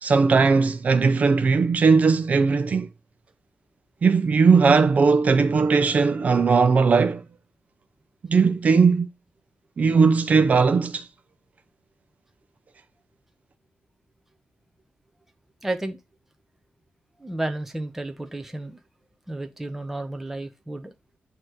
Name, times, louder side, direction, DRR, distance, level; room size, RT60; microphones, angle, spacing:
voice 1, 0.0-2.9 4.0-7.2 8.3-9.1 9.8-11.1, right 5 dB, 40° right, 0.7 m, -18 dB
voice 2, 15.6-16.0 17.2-18.8 19.3-20.9, right 2 dB, 5° right, 0.8 m, -32 dB
8.6 x 3.0 x 4.6 m
wide cardioid pair, 175°, 4 cm